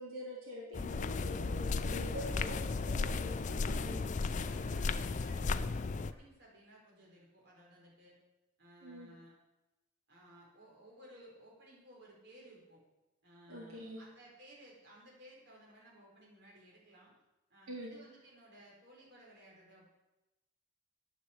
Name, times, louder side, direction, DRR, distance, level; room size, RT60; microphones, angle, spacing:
voice 1, 0.0-4.8 8.8-9.1 13.5-14.0 17.7-17.9, equal, 85° right, -4 dB, 3.6 m, -46 dB
sound 1, 0.7-6.1, left 4 dB, 35° left, 0.4 m, -35 dB
voice 2, 4.5-8.2 8.6-9.3 10.1-12.8 13.2-17.1 17.5-19.9, equal, 55° right, -4 dB, 4.3 m, -58 dB
9.5 x 8.1 x 8.3 m, 0.99 s
head